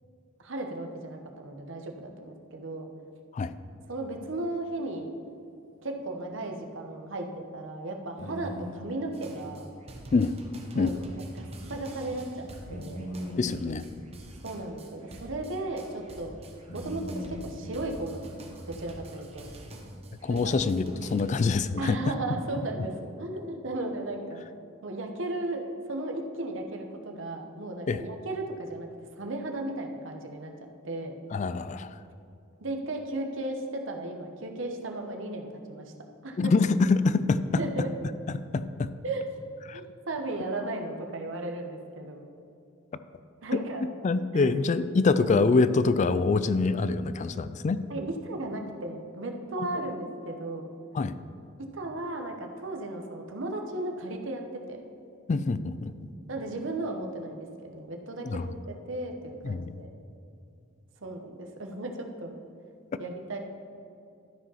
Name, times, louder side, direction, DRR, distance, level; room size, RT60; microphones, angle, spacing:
voice 1, 0.4-2.9 3.9-5.1 5.8-9.7 10.7-11.0 11.3-13.0 14.4-16.4 16.7-18.4 18.7-19.5 20.3-20.6 21.8-24.4 24.8-25.6 25.9-28.9 29.2-31.2 32.6-35.9 36.2-36.5 37.6-37.9 39.0-39.2 39.7-42.2 43.4-43.8 44.3-44.6 45.2-45.4 47.9-50.7 51.7-54.4 54.7-54.8 56.3-58.5 58.9-59.9 61.0-62.4 63.0-63.4, right 2 dB, 70° right, 3 dB, 1.0 m, -35 dB
sound 1, 6.5-6.6 7.0-7.1 8.2-8.8 10.8-10.9 11.2-11.3 12.7-13.5 15.6-15.7 16.7-17.8, equal, 75° left, 1.6 m, -39 dB
sound 2, 9.1-21.5, right 1 dB, 30° right, 1.0 m, -45 dB
voice 2, 13.4-13.8 20.2-22.0 27.9-28.0 31.3-31.9 36.4-37.6 38.5-38.9 39.7-39.8 44.0-47.8 49.6-49.7 50.9-51.1 55.3-55.9 58.3-58.5 59.4-59.8, left 4 dB, 35° left, 14 dB, 0.3 m, -25 dB
13.0 x 5.0 x 5.6 m, 2.5 s
head